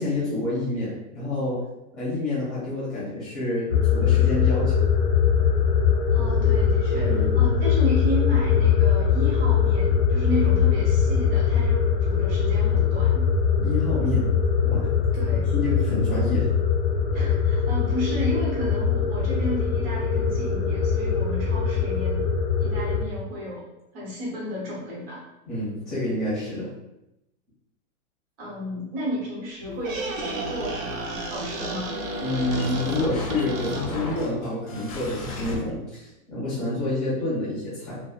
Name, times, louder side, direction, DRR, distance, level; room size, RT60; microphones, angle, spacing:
voice 1, 0.0-1.6 1.9-4.9 7.0-7.3 13.6-14.3 14.6-15.0 15.3-16.5 25.4-26.7 32.2-38.0, left 2 dB, ahead, -10 dB, 0.7 m, -28 dB
sound 1, 3.7-23.0, left 7 dB, 45° left, 0.4 m, -22 dB
voice 2, 6.1-13.3 15.1-15.5 17.1-22.3 22.6-23.7 23.9-25.2 28.4-31.9, equal, 25° right, -5 dB, 0.8 m, -33 dB
Squeak, 29.6-34.2, right 2 dB, 65° right, 0.7 m, -32 dB
sound 2, 29.7-35.6, left 3 dB, 75° left, 0.8 m, -38 dB
2.6 x 2.2 x 2.3 m, 0.91 s
hypercardioid pair, 160°, 43 cm